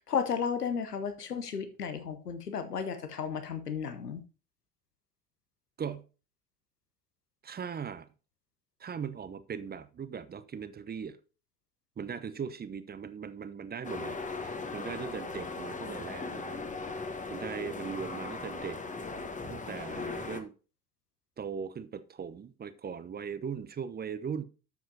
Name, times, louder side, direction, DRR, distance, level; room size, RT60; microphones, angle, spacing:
voice 1, 0.1-4.2, left 6 dB, 85° left, 1.0 m, -33 dB
voice 2, 7.4-8.1 8.8-11.2 12.0-16.4 17.3-18.8 19.5-20.5 21.4-24.4, right 7 dB, 20° right, 0.7 m, -39 dB
sound 1, 13.8-20.4, left 3 dB, 15° left, 1.3 m, -38 dB
11.5 x 7.6 x 2.8 m
figure-of-eight pair, 55°, 46 cm